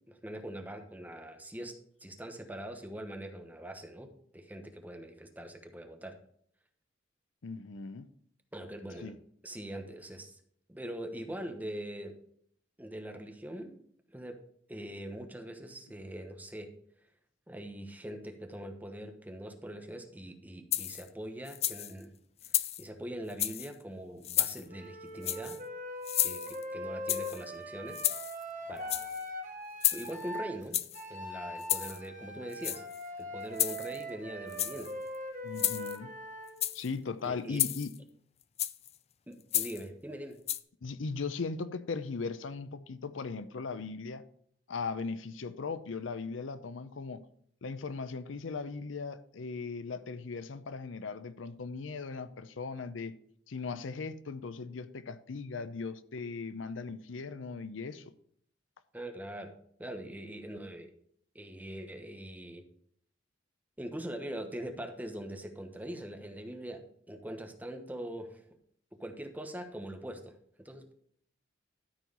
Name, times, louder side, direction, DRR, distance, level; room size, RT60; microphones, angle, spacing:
voice 1, 0.1-1.7 2.0-4.1 4.3-6.2 8.5-9.1 9.4-10.4 10.7-12.1 12.8-13.7 14.1-14.4 14.7-16.7 17.5-22.1 22.5-25.6 26.2-28.0 28.7-29.2 29.9-30.8 31.1-32.8 33.2-34.9 37.2-37.6 39.3-40.4 58.9-59.5 59.8-60.9 61.3-62.6 63.8-66.8 67.1-68.4 69.0-70.3 70.6-70.9, right 1 dB, 10° right, 1.0 m, -42 dB
voice 2, 7.4-8.1 9.0-9.2 35.4-36.1 36.7-37.9 40.8-44.2 44.7-47.3 47.6-53.1 53.5-58.1, left 4 dB, 80° left, 0.6 m, -38 dB
sound 1, 20.7-21.1 21.5-21.9 22.4-22.9 23.3-23.7 24.2-24.6 25.2-25.6 26.0-26.6 27.1-27.4 27.9-28.4 28.8-29.2 29.8-30.2 30.7-31.0 31.6-32.0 32.5-33.0 33.6-34.0 34.5-34.9 35.6-36.0 36.5-36.9 37.6-38.0 38.6-38.9 39.5-39.8 40.5-40.6, left 12 dB, 35° left, 0.4 m, -32 dB
Wind instrument woodwind instrument, 24.7-30.5 30.9-36.6, equal, 40° right, 1.6 m, -41 dB
13.0 x 4.7 x 5.4 m
head